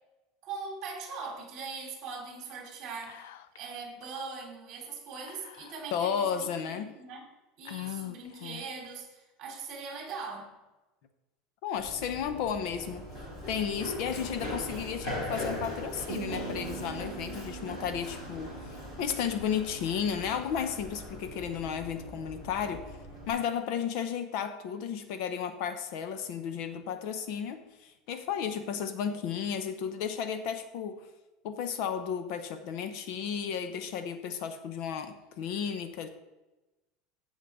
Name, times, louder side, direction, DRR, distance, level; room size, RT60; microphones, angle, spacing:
voice 1, 0.4-3.3 3.6-7.2 7.6-10.5, right 4 dB, 35° right, 0 dB, 2.9 m, -41 dB
Whispering, 3.0-3.7 4.0-4.1 5.3-6.1 6.8-6.9 7.7-8.9, left 15 dB, 90° left, 0.5 m, -43 dB
voice 2, 5.9-6.9 11.6-13.1 13.5-23.0 23.3-31.1 31.4-36.1, left 7 dB, 50° left, 9 dB, 0.7 m, -33 dB
Run, 11.7-23.3, left 1 dB, 30° left, 3.6 m, -40 dB
sound 1, 16.1-20.4, right 13 dB, 85° right, 0.4 m, -45 dB
15.5 x 5.5 x 3.6 m, 1.1 s
supercardioid pair, 175°, 0 cm